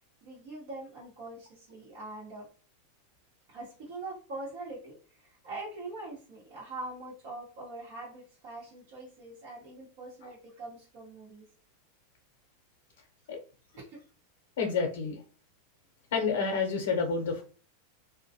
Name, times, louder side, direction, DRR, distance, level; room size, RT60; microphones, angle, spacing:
voice 1, 0.2-2.5 3.5-11.5 13.8-14.1, right 2 dB, 45° right, -8 dB, 1.0 m, -43 dB
voice 2, 14.6-15.2 16.1-17.4, left 5 dB, 75° left, 3 dB, 0.7 m, -29 dB
2.2 x 2.1 x 2.7 m, 0.38 s
supercardioid pair, 180°, 0 cm